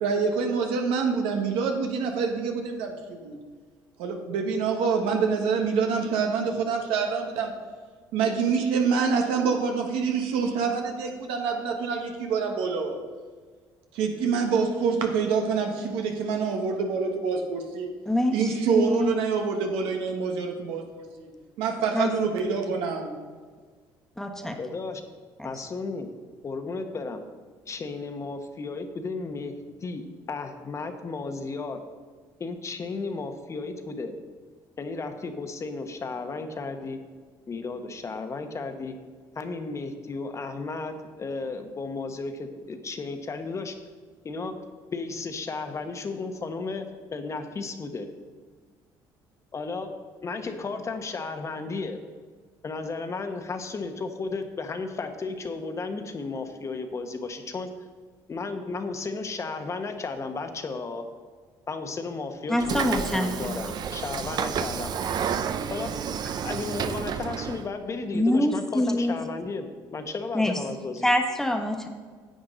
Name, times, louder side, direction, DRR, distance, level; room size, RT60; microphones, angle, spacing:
voice 1, 0.0-3.4 4.0-7.5 8.1-13.0 13.9-17.9 18.3-21.3 21.6-23.1, right 5 dB, 85° right, 3 dB, 1.4 m, -26 dB
voice 2, 18.1-18.4 18.7-19.1 21.9-22.1 24.2-24.6 25.4-25.5 62.5-63.5 68.1-69.1 70.3-70.6 71.0-71.9, left 1 dB, 5° left, 3 dB, 1.2 m, -25 dB
voice 3, 24.6-25.0 25.4-26.1 26.4-27.2 27.7-31.8 32.4-34.1 34.8-37.0 37.5-39.0 39.3-43.7 44.2-44.6 44.9-48.1 49.5-49.9 50.2-52.0 52.6-57.7 58.3-61.1 61.7-64.9 65.7-66.2 66.4-71.1, left 3 dB, 35° left, 6 dB, 1.0 m, -34 dB
Train / Sliding door, 62.6-67.7, right 7 dB, 50° right, 0.6 m, -30 dB
10.0 x 7.8 x 3.9 m, 1.6 s
cardioid pair, 95°, 9 cm